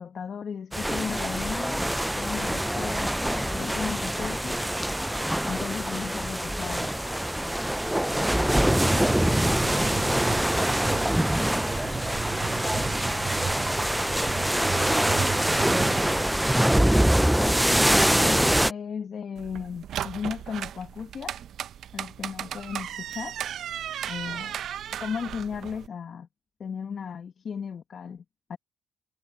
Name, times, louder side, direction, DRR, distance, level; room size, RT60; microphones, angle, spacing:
voice 1, 0.0-1.8 2.1-4.6 5.5-6.9 17.4-21.4 21.9-23.4 24.1-24.6 25.0-26.3 26.6-28.2 28.5-28.6, left 6 dB, 50° left, 1.3 m, -35 dB
sound 1, 0.7-18.7, right 1 dB, 5° right, 0.4 m, -24 dB
sound 2, 8.4-17.0, right 6 dB, 45° right, 2.1 m, -35 dB
voice 2, 11.8-16.7, left 2 dB, 15° left, 2.5 m, -46 dB
sound 3, 19.4-25.9, right 10 dB, 70° right, 0.6 m, -36 dB
cardioid pair, 90°, 0 cm